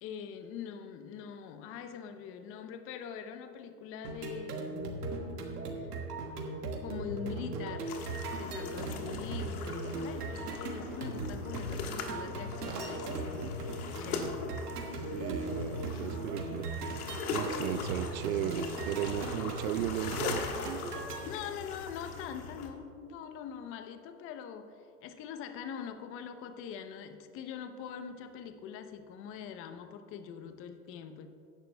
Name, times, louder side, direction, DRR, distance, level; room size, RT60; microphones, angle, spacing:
voice 1, 0.0-5.2 5.7-5.9 6.8-8.0 8.3-13.6 14.0-14.5 21.2-31.3, left 7 dB, 30° left, 9 dB, 0.6 m, -43 dB
sound 1, 4.0-21.2, right 2 dB, 80° right, 1.8 m, -38 dB
Telephone, 6.0-20.5, right 4 dB, 40° right, 1.5 m, -56 dB
sound 2, 7.9-22.7, left 5 dB, 70° left, 1.5 m, -41 dB
voice 2, 15.1-16.7 17.3-20.5, right 12 dB, 65° right, 13 dB, 0.5 m, -35 dB
16.0 x 10.5 x 2.2 m, 2.5 s
hypercardioid pair, 110°, 47 cm